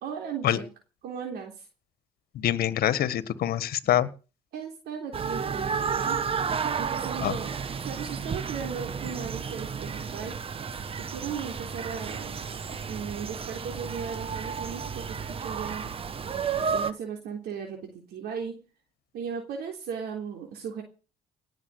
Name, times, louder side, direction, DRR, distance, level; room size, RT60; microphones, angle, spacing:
voice 1, 0.0-0.7 1.0-1.7 4.5-6.2 6.8-7.5 7.8-10.4 11.0-12.4 12.9-15.9 16.6-18.6 19.1-20.8, right 7 dB, 75° right, 3 dB, 3.7 m, -37 dB
voice 2, 2.3-4.1 7.2-7.3, left 11 dB, 65° left, 15 dB, 1.6 m, -25 dB
sound 1, 5.1-16.9, right 6 dB, 35° right, 1.1 m, -32 dB
18.5 x 7.4 x 7.9 m, 0.35 s
cardioid pair, 110°, 17 cm